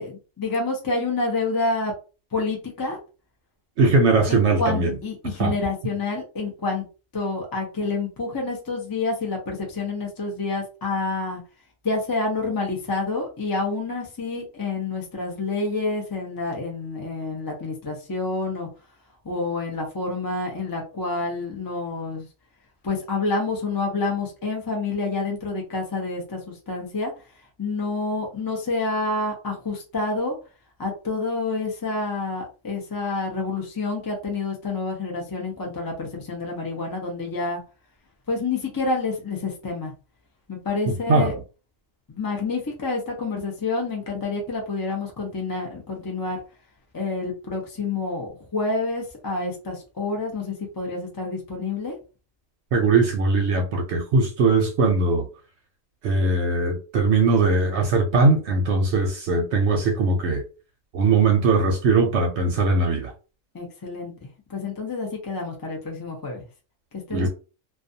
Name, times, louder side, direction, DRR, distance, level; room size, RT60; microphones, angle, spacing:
voice 1, 0.0-1.9 2.3-3.0 4.3-6.8 7.1-11.4 11.8-18.7 19.2-22.3 22.8-27.1 27.6-30.3 30.8-37.6 38.3-39.9 40.5-41.3 42.1-46.4 46.9-52.0 63.5-66.4 67.1-67.3, left 3 dB, 30° left, 0.3 m, -28 dB
voice 2, 3.8-4.9 5.4-5.5 40.9-41.3 52.7-55.3 56.0-60.4 60.9-63.1 67.1-67.3, right 3 dB, 70° right, 0.8 m, -20 dB
2.3 x 2.3 x 2.6 m
omnidirectional pair, 1.3 m